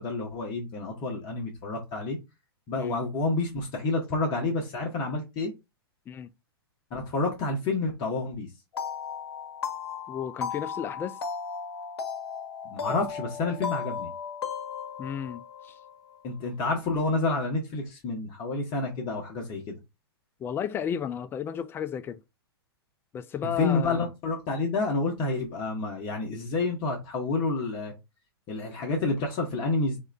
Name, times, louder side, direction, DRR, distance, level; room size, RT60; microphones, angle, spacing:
voice 1, 0.0-2.2 2.7-5.5 6.9-8.5 12.6-14.1 16.2-19.8 23.4-27.9 28.5-30.0, left 3 dB, 35° left, 1.1 m, -29 dB
sound 1, 8.7-16.2, left 6 dB, 75° left, 0.9 m, -36 dB
voice 2, 10.1-11.2 15.0-15.8 20.4-22.2 23.1-24.1, left 8 dB, 15° left, 0.3 m, -33 dB
3.7 x 2.5 x 3.3 m
hypercardioid pair, 115°, 13 cm